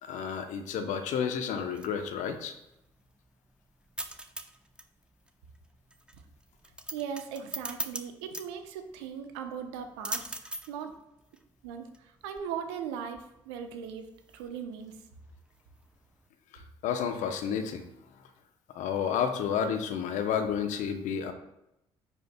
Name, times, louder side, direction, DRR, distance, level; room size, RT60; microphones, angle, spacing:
voice 1, 0.0-2.5 16.5-17.9 18.7-21.3, left 7 dB, 60° left, 7 dB, 0.8 m, -31 dB
sound 1, 1.6-16.3, right 1 dB, 5° right, 0.6 m, -44 dB
voice 2, 6.9-10.9 11.6-15.0, right 7 dB, 75° right, 7 dB, 0.8 m, -39 dB
9.6 x 5.1 x 2.2 m, 0.85 s
figure-of-eight pair, 50°, 14 cm